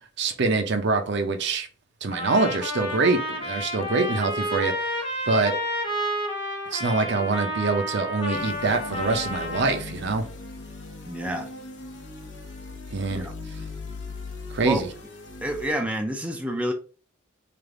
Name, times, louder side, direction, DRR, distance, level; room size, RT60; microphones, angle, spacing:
voice 1, 0.2-1.7 2.0-5.5 6.7-10.3 12.9-13.3 14.5-14.9, right 3 dB, 60° right, 0.6 m, -25 dB
Trumpet, 2.1-9.8, equal, 25° left, 1.0 m, -30 dB
sound 1, 8.3-15.7, left 3 dB, 65° left, 0.8 m, -39 dB
voice 2, 11.1-11.5 13.1-13.3 14.6-14.8 15.4-16.7, right 1 dB, 5° right, 0.4 m, -28 dB
3.3 x 2.5 x 3.6 m
head